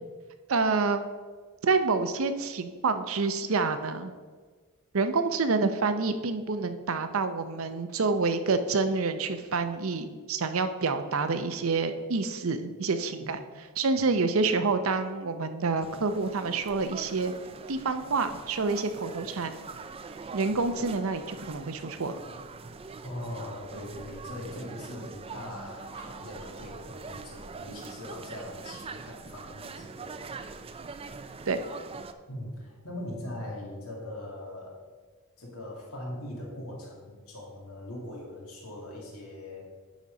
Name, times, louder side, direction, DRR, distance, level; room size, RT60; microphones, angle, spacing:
voice 1, 0.5-1.1 1.6-4.1 4.9-13.4 13.8-17.3 17.7-19.6 20.3-22.2 31.5-31.6, right 4 dB, 65° right, 9 dB, 0.6 m, -28 dB
sound 1, 15.8-32.1, right 4 dB, 25° right, 0.3 m, -43 dB
voice 2, 23.0-30.3 32.3-34.8 35.4-39.6, left 1 dB, 80° left, -3 dB, 2.3 m, -41 dB
10.5 x 4.1 x 5.1 m, 1.4 s
head